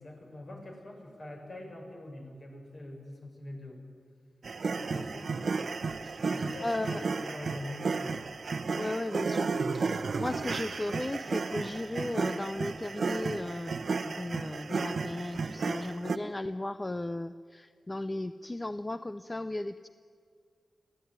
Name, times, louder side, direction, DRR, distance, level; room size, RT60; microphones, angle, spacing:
voice 1, 0.0-3.8 4.7-5.5 6.3-8.3, left 1 dB, 45° left, 1 dB, 6.5 m, -44 dB
sound 1, 4.4-16.2, right 4 dB, 65° right, 1.0 m, -33 dB
voice 2, 4.9-5.2 6.0-7.0 8.7-19.9, left 1 dB, 20° left, 12 dB, 0.6 m, -36 dB
25.0 x 15.5 x 9.6 m, 2.1 s
wide cardioid pair, 85°, 0 cm